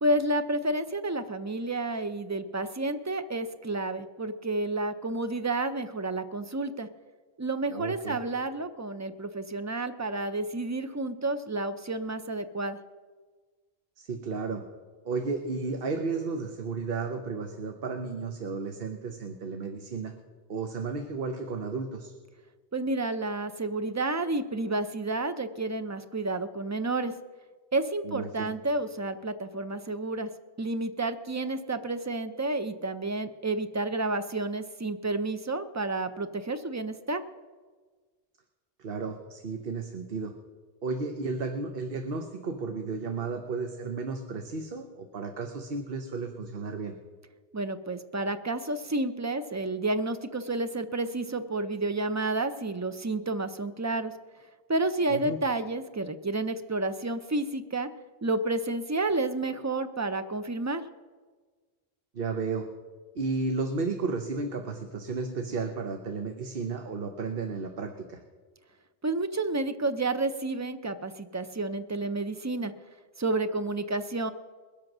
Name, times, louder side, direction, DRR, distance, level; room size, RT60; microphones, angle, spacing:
voice 1, 0.0-6.9 7.4-12.8 22.7-27.1 27.7-30.3 30.6-37.2 47.5-54.1 54.7-57.9 58.2-60.8 69.0-72.7 73.2-74.3, right 2 dB, 25° right, 10 dB, 0.4 m, -30 dB
voice 2, 7.7-8.2 14.0-14.6 15.0-20.1 20.5-22.1 28.0-28.5 38.8-40.3 40.8-46.9 55.1-55.4 62.1-62.7 63.1-68.2, right 4 dB, 60° right, 5 dB, 1.1 m, -33 dB
21.0 x 7.8 x 6.1 m, 1.4 s
omnidirectional pair, 1.1 m